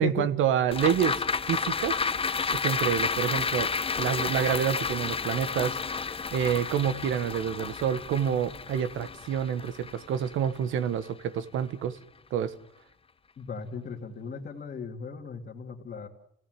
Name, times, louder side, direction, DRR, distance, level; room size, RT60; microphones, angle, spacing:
voice 1, 0.0-2.0 2.5-3.7 4.0-12.0 12.3-12.5, right 9 dB, 85° right, 13 dB, 1.3 m, -28 dB
sound 1, 0.7-11.2 11.6-11.7, left 5 dB, 30° left, 0.8 m, -31 dB
voice 2, 13.4-16.1, left 6 dB, 50° left, -2 dB, 2.4 m, -37 dB
28.5 x 17.5 x 7.8 m, 0.75 s
cardioid pair, 90°, 20 cm